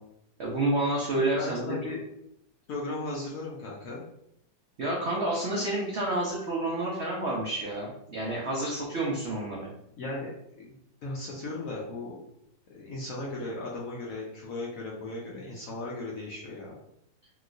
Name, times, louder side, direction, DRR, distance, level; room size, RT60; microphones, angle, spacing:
voice 1, 0.4-1.8 4.8-9.7, right 2 dB, 85° right, -4 dB, 0.6 m, -29 dB
voice 2, 1.2-2.0 2.7-4.0 10.0-12.2 12.7-16.7, left 2 dB, 65° left, -3 dB, 0.8 m, -37 dB
3.0 x 3.0 x 2.5 m, 0.76 s
omnidirectional pair, 2.0 m